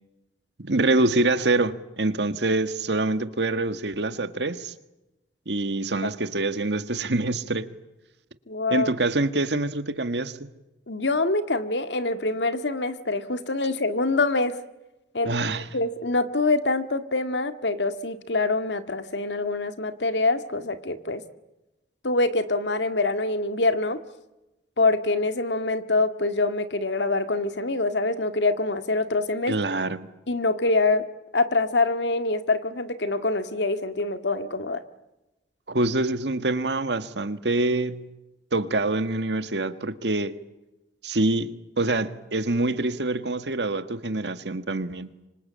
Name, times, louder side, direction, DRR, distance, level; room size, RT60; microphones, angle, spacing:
voice 1, 0.6-4.7 5.4-7.7 8.7-10.4 15.2-15.7 29.5-30.0 35.7-38.0 38.5-40.3 41.0-45.1, right 2 dB, 80° right, 1.7 m, -25 dB
voice 2, 8.5-8.9 10.9-14.6 15.1-15.4 15.7-21.2 22.0-24.0 24.8-29.5 30.3-31.1 31.3-34.8, left 3 dB, 85° left, 1.9 m, -25 dB
26.0 x 25.5 x 8.7 m
head